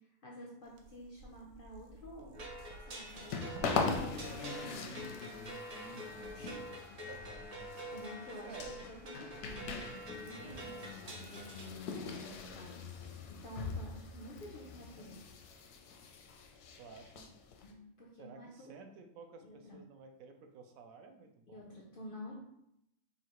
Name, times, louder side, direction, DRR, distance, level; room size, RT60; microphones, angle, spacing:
voice 1, 0.0-2.4 2.8-3.8 4.2-5.0 6.3-6.6 7.9-8.6 8.8-9.7 10.2-12.9 13.3-15.2 17.6-18.7 19.4-19.8 21.5-22.3, equal, 60° left, -2 dB, 0.5 m, -50 dB
sound 1, 0.6-16.9, right 2 dB, 90° right, 1.2 m, -56 dB
sound 2, 2.3-11.7, right 1 dB, 55° right, 0.4 m, -47 dB
sound 3, 2.6-17.7, left 5 dB, 85° left, 1.1 m, -42 dB
voice 2, 5.7-6.5 8.4-8.8 10.3-10.7 16.8-17.3 18.2-21.6, right 4 dB, 70° right, 4 dB, 1.0 m, -53 dB
5.6 x 2.4 x 3.0 m, 0.78 s
omnidirectional pair, 1.6 m